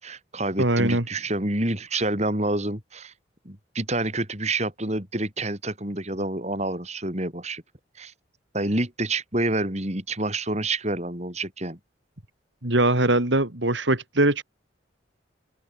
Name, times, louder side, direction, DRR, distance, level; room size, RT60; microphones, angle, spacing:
voice 1, 0.0-3.1 3.4-7.6 8.0-8.1 8.5-11.8, right 2 dB, 35° right, 4.6 m, -28 dB
voice 2, 0.6-1.0 12.6-14.4, right 2 dB, 70° right, 3.4 m, -21 dB
open air
head